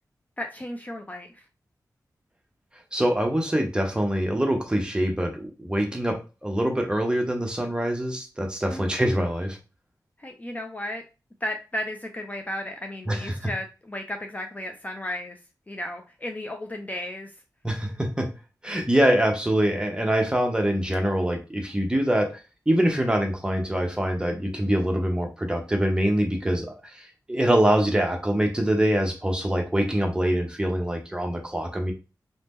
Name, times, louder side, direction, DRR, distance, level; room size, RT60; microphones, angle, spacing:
voice 1, 0.4-1.5 8.7-9.0 10.2-11.0 11.4-15.4 15.7-17.4, left 1 dB, 20° left, 4 dB, 0.4 m, -34 dB
voice 2, 2.9-9.6 13.1-13.2 17.6-18.3 18.6-22.3 22.7-26.8 27.3-31.9, right 1 dB, 10° right, 3 dB, 0.7 m, -24 dB
2.7 x 2.1 x 3.4 m, 0.30 s
wide cardioid pair, 75°, 7 cm